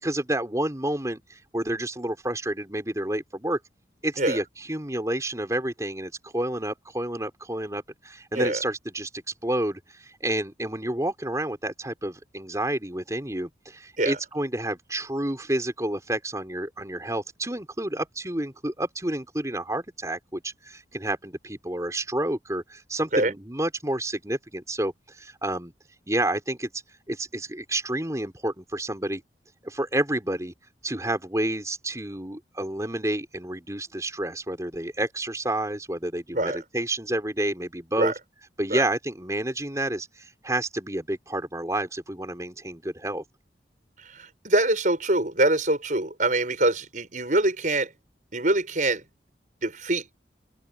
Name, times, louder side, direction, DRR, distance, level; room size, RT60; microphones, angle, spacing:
voice 1, 0.0-3.6 4.0-25.7 26.1-26.8 27.1-29.2 29.6-30.5 30.8-38.1 38.6-43.2, right 1 dB, 20° right, 4.6 m, -29 dB
voice 2, 44.0-47.9 48.3-49.0 49.6-50.1, right 2 dB, 45° right, 6.9 m, -24 dB
open air
head